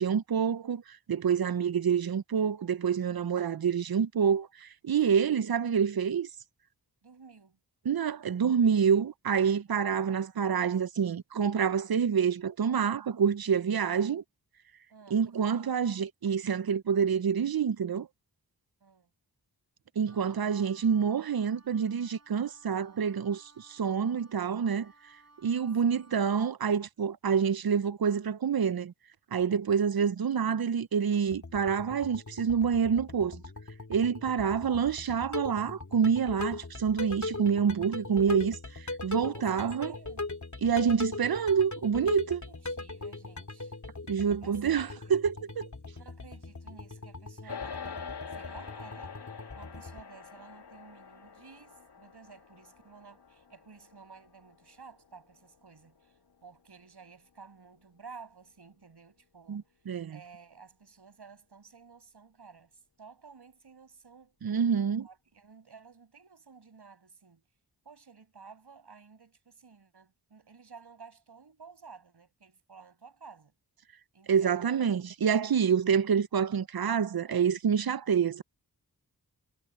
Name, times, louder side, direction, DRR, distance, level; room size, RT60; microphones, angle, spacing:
voice 1, 0.0-6.3 7.9-14.2 15.1-18.1 20.0-24.9 25.4-28.9 29.3-33.4 33.9-39.9 40.6-42.4 44.1-45.7 59.5-60.2 64.4-65.1 74.3-78.4, right 7 dB, 65° right, 0.8 m, -27 dB
voice 2, 7.0-7.6 14.9-15.2 18.8-19.1 25.8-26.0 29.6-30.0 39.2-40.3 42.3-43.8 44.4-45.5 46.0-59.8 60.1-64.3 65.0-67.4 67.8-73.5 74.1-75.0, right 5 dB, 85° right, 6.9 m, -53 dB
Wind instrument woodwind instrument, 20.1-26.5, right 2 dB, 40° right, 5.5 m, -60 dB
sound 1, 31.3-50.0, left 3 dB, 45° left, 3.1 m, -40 dB
sound 2, 47.5-57.0, left 6 dB, 85° left, 2.0 m, -46 dB
cardioid pair, 50°, 39 cm